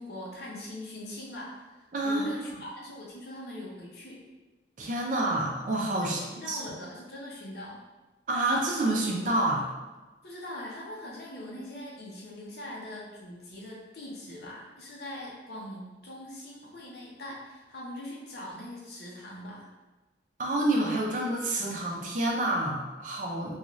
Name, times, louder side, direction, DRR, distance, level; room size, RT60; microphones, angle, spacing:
voice 1, 0.0-4.2 6.0-7.8 10.2-19.7, left 1 dB, 65° left, -4 dB, 0.7 m, -42 dB
voice 2, 1.9-2.3 4.8-6.6 8.3-9.7 20.4-23.6, right 1 dB, 45° right, -1 dB, 0.5 m, -28 dB
2.5 x 2.4 x 3.0 m, 1.2 s
head